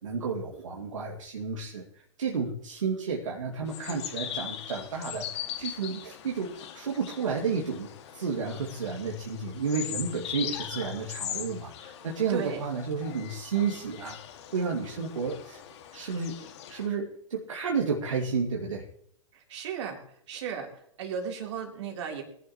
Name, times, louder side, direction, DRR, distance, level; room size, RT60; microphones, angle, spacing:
voice 1, 0.0-14.2 14.5-15.6 15.9-18.8, right 5 dB, 80° right, -2 dB, 2.3 m, -32 dB
sound 1, 3.7-16.9, left 10 dB, 60° left, 2.1 m, -40 dB
voice 2, 12.3-12.6 19.5-20.0 20.3-20.7 21.0-22.2, right 7 dB, 60° right, 2 dB, 3.7 m, -34 dB
20.5 x 11.0 x 3.1 m, 0.66 s
hypercardioid pair, 110°, 16 cm